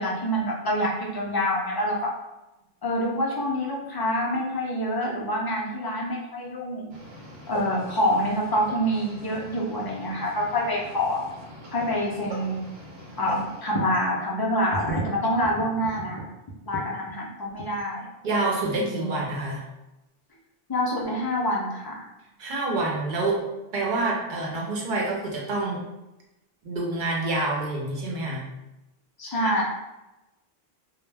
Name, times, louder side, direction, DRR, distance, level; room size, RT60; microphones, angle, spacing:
voice 1, 0.0-2.2 2.8-6.9 7.5-11.3 11.7-12.7 13.2-16.2 16.7-18.1 18.8-19.3 20.7-22.1 29.2-29.6, equal, 40° left, -2 dB, 0.3 m, -26 dB
sound 1, 6.9-13.6, equal, 90° right, 0.9 m, -43 dB
voice 2, 18.2-19.6 22.4-23.4 23.7-25.9 26.6-28.5 29.3-29.5, right 2 dB, 55° right, -2 dB, 0.8 m, -27 dB
2.1 x 2.1 x 3.2 m, 0.97 s
omnidirectional pair, 1.0 m